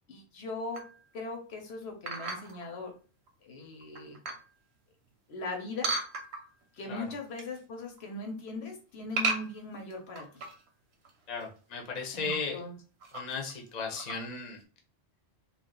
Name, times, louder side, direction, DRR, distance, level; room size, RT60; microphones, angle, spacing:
voice 1, 0.1-0.8 1.1-2.9 3.4-4.2 5.3-5.9 6.7-10.4 12.1-12.7, left 3 dB, 85° left, 2 dB, 1.1 m, -39 dB
sound 1, 0.7-1.1 2.1-2.6 3.3-3.4 3.8-4.5 5.8-6.6 7.1-7.6 7.9-8.3 9.1-10.7 11.0-11.1 11.4-11.5 12.1-12.4 13.0-13.5 13.9-14.2, right 3 dB, 90° right, 1.0 m, -35 dB
voice 2, 11.3-12.6 13.1-14.6, left 4 dB, 45° left, 0 dB, 0.8 m, -36 dB
2.4 x 2.4 x 3.7 m, 0.37 s
omnidirectional pair, 1.1 m